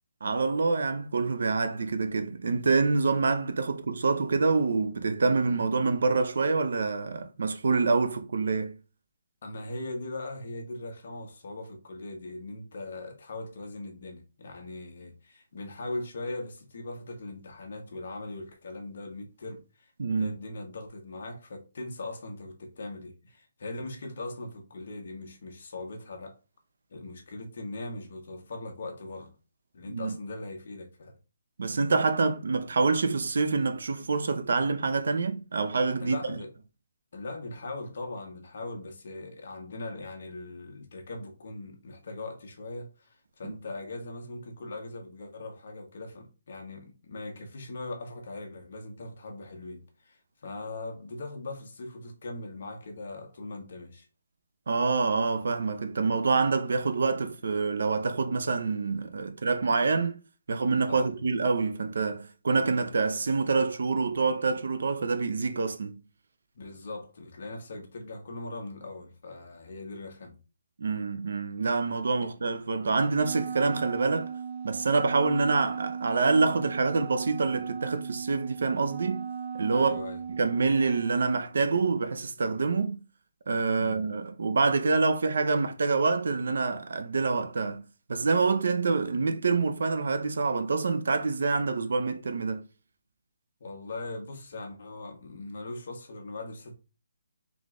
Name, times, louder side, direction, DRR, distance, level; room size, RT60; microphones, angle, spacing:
voice 1, 0.2-8.8 20.0-20.4 29.9-30.1 31.6-36.4 43.4-43.6 54.7-60.2 60.5-66.0 70.8-74.3 74.6-79.3 79.6-80.0 80.4-83.0 83.5-87.8 88.1-92.6, right 4 dB, 60° right, 0.6 m, -26 dB
voice 2, 9.4-19.9 20.2-26.4 26.9-29.3 29.7-31.2 36.0-36.5 37.1-54.1 60.9-61.1 66.5-70.4 72.2-72.3 79.7-80.2 83.8-84.0 93.6-96.8, left 2 dB, 45° left, 1.2 m, -40 dB
Wind instrument woodwind instrument, 73.1-81.3, right 6 dB, 25° right, 0.8 m, -37 dB
3.9 x 3.1 x 3.6 m
hypercardioid pair, 175°, 0 cm